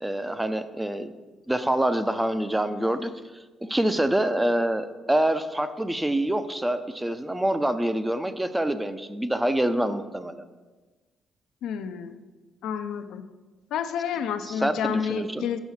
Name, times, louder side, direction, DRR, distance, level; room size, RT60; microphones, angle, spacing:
voice 1, 0.0-1.1 1.5-10.4 14.5-15.5, right 1 dB, 10° right, 10 dB, 0.4 m, -26 dB
voice 2, 11.6-12.2 12.6-13.2 13.7-15.6, left 7 dB, 85° left, 9 dB, 0.4 m, -29 dB
6.1 x 4.6 x 5.6 m, 1.3 s
cardioid pair, 90°, 0 cm